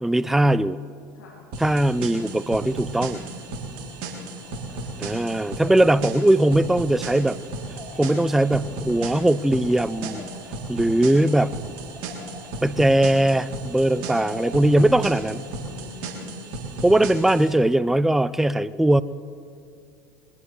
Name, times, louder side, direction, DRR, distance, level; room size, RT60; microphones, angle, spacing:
voice 1, 0.0-0.8 1.6-3.2 5.0-7.4 8.0-10.2 10.7-11.5 12.6-15.5 16.8-19.0, right 1 dB, 5° right, 17 dB, 0.5 m, -20 dB
voice 2, 1.1-1.5 3.8-5.0 15.7-16.7, left 6 dB, 80° left, -2 dB, 2.2 m, -47 dB
sound 1, 1.5-17.5, right 3 dB, 60° right, 3.4 m, -35 dB
sound 2, 4.2-15.8, left 3 dB, 25° left, 4.5 m, -46 dB
22.0 x 19.0 x 3.4 m, 2.6 s
hypercardioid pair, 80°, 10 cm